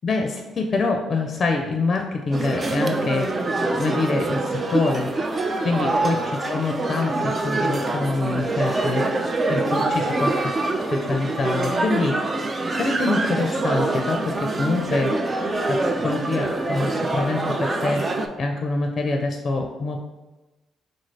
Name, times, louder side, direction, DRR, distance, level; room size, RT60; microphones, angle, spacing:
voice 1, 0.0-3.3 3.8-5.1 5.6-6.2 6.5-9.0 9.5-10.3 10.9-12.2 12.7-15.1 15.7-18.0 18.4-20.0, left 3 dB, 50° left, 3 dB, 0.4 m, -25 dB
sound 1, 2.3-18.3, right 2 dB, 35° right, 0.4 m, -25 dB
3.8 x 2.5 x 3.2 m, 1.1 s
supercardioid pair, 65°, 0 cm